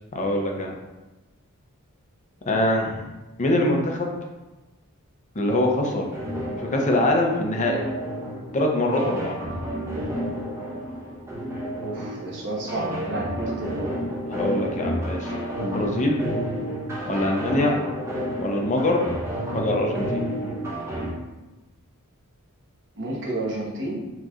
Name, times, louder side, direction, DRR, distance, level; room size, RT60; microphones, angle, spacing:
voice 1, 0.1-0.7 2.5-3.1 3.4-4.2 5.4-6.1 6.6-7.8 8.5-9.3 14.3-15.3 15.6-16.2 17.0-17.8 18.4-19.0 19.5-20.3, left 1 dB, 35° left, 1 dB, 0.6 m, -23 dB
sound 1, 6.1-21.1, equal, 10° right, 0.7 m, -31 dB
voice 2, 11.8-13.9 23.0-24.0, right 2 dB, 55° right, -3 dB, 1.0 m, -31 dB
6.2 x 3.0 x 2.4 m, 1.1 s
head